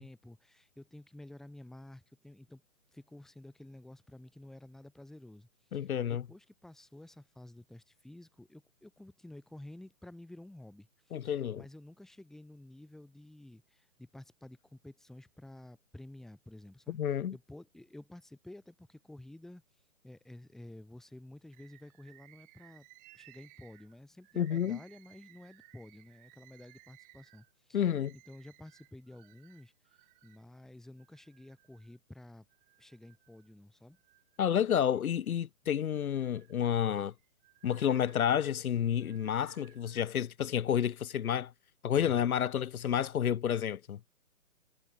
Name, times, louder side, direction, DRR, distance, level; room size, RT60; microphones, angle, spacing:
voice 1, 0.0-2.6 2.9-19.6 20.0-22.9 23.1-29.7 30.2-32.5 32.8-34.0, left 1 dB, ahead, 1.3 m, -52 dB
voice 2, 5.7-6.2 11.1-11.6 17.0-17.3 24.4-24.8 27.7-28.1 34.4-37.1 37.6-41.5 41.8-44.0, left 9 dB, 80° left, 0.8 m, -30 dB
Bird, 21.5-30.4 31.0-32.0 32.5-33.5 33.9-35.3 35.8-40.1 40.8-41.2, right 22 dB, 20° right, 2.4 m, -62 dB
hypercardioid pair, 150°, 42 cm